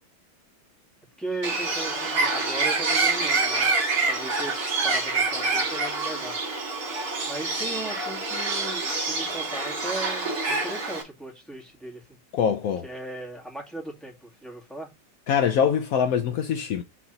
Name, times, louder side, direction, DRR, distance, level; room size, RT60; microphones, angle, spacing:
voice 1, 1.2-3.8 4.1-4.5 4.8-6.4 7.3-12.0 12.8-14.9, right 2 dB, ahead, 2.1 m, -37 dB
Bird, 1.4-11.0, right 3 dB, 50° right, 2.4 m, -26 dB
voice 2, 12.3-12.9 15.3-16.8, left 7 dB, 80° left, 0.7 m, -23 dB
4.8 x 4.0 x 5.8 m
omnidirectional pair, 2.2 m